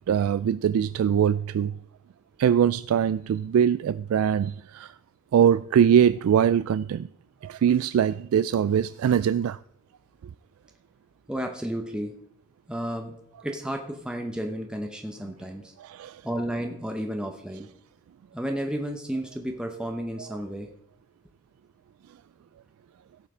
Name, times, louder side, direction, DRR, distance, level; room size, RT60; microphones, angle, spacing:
voice 1, 0.1-1.7 2.4-4.9 5.3-7.1 7.4-9.6 15.8-16.2, right 8 dB, 80° right, 0.3 m, -22 dB
voice 2, 11.3-12.2 12.7-13.1 13.4-15.7 16.2-17.7 18.3-20.7, equal, 5° right, 0.8 m, -32 dB
16.5 x 5.8 x 4.9 m
head